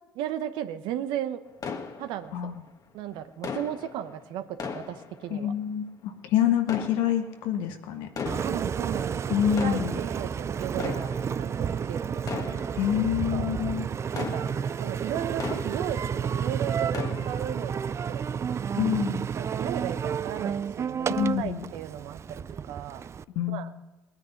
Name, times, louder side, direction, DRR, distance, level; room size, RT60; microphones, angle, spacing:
voice 1, 0.1-1.4 2.0-2.5 2.9-5.5 8.4-12.2 13.3-13.5 14.2-14.5 14.8-17.8 18.1-18.2 19.3-23.0 23.5-23.7, right 11 dB, 75° right, 10 dB, 0.9 m, -35 dB
sound 1, 1.6-2.7 3.4-5.8 6.6-7.6 8.1-9.0 9.4-16.4 16.7-17.8 18.2-18.3 18.9-19.0, left 5 dB, 45° left, 1.5 m, -38 dB
voice 2, 2.3-2.6 5.3-8.1 9.3-10.0 12.8-13.9 18.8-19.3 21.1-21.6 23.3-23.7, left 10 dB, 75° left, 6 dB, 1.4 m, -27 dB
Engine, 8.3-23.2, right 7 dB, 35° right, 0.4 m, -31 dB
19.5 x 9.6 x 5.8 m, 1.1 s
supercardioid pair, 70°, 8 cm